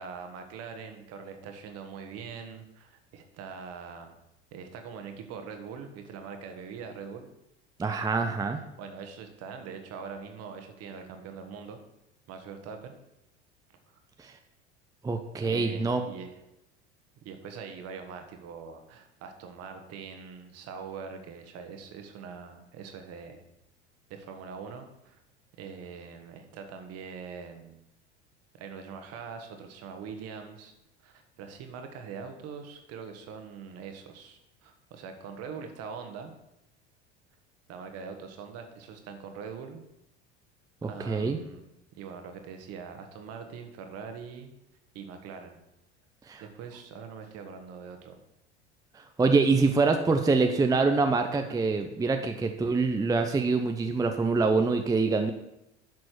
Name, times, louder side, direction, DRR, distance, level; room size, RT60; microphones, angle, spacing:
voice 1, 0.0-4.2 4.5-7.3 8.8-11.8 12.3-12.9 15.4-16.4 17.2-23.4 24.1-25.2 25.6-27.8 28.5-30.7 31.0-36.3 37.7-39.8 40.8-41.6 42.0-44.5 44.9-45.6 46.4-48.2, right 6 dB, 45° right, 6 dB, 1.6 m, -43 dB
voice 2, 7.8-8.6 14.2-14.3 15.0-16.0 40.8-41.4 46.3-46.4 48.9-55.3, right 4 dB, 10° right, 6 dB, 0.6 m, -25 dB
11.0 x 6.3 x 4.6 m, 0.87 s
figure-of-eight pair, 70°, 34 cm